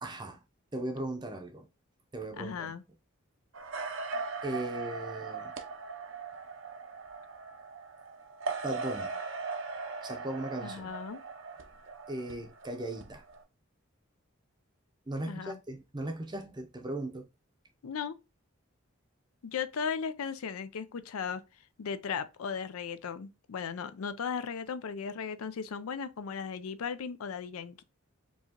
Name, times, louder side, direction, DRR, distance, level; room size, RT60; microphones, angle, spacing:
voice 1, 0.0-0.4 0.7-1.7 2.1-2.7 4.4-5.5 8.6-9.2 10.0-10.9 12.1-13.2 15.1-17.3, right 1 dB, 20° right, 0.6 m, -38 dB
voice 2, 2.4-2.8 10.6-11.2 15.2-15.6 17.8-18.2 19.4-21.4 21.8-27.8, left 6 dB, 85° left, 0.5 m, -36 dB
sound 1, 3.5-13.4, right 4 dB, 60° right, 0.6 m, -39 dB
4.5 x 2.9 x 2.9 m
head